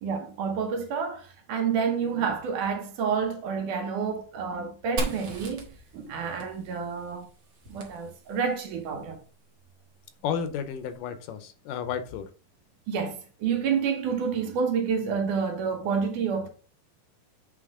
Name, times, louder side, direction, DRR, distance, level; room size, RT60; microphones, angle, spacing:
voice 1, 0.0-5.7 5.9-7.3 7.7-9.2 12.9-16.5, right 6 dB, 70° right, 2.5 m, -29 dB
Fire, 5.0-8.6, right 2 dB, 50° right, 1.6 m, -38 dB
voice 2, 10.2-12.3, left 7 dB, 80° left, 2.3 m, -32 dB
8.7 x 3.8 x 3.6 m
omnidirectional pair, 3.9 m